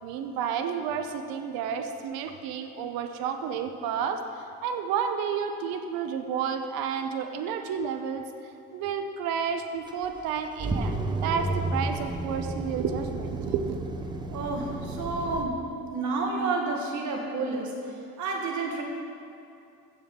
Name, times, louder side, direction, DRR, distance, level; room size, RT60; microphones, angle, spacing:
voice 1, 0.0-8.2 8.7-13.8, right 7 dB, 70° right, 7 dB, 0.7 m, -31 dB
sound 1, 9.9-15.4, right 2 dB, 10° right, 0.5 m, -32 dB
voice 2, 14.3-15.6 15.9-17.7 18.2-18.8, right 3 dB, 50° right, 1 dB, 1.5 m, -30 dB
15.0 x 7.5 x 3.7 m, 2.5 s
cardioid pair, 140°, 37 cm